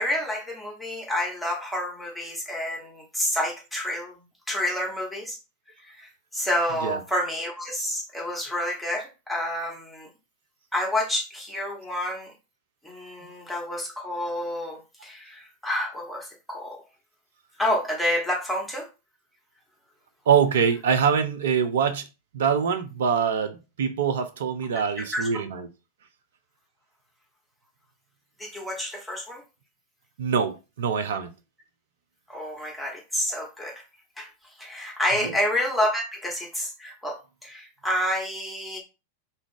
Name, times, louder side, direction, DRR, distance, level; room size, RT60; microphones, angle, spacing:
voice 1, 0.0-4.1 4.5-5.4 5.8-10.1 10.7-12.3 12.8-16.8 17.6-18.9 25.1-25.3 28.4-29.4 32.3-33.7 34.2-34.3 34.6-38.8, left 1 dB, 5° left, 1.1 m, -29 dB
voice 2, 20.3-22.1 22.3-25.7 30.2-31.3 35.2-35.3, right 7 dB, 60° right, 0.5 m, -24 dB
2.7 x 2.3 x 3.7 m
figure-of-eight pair, 90°, 0 cm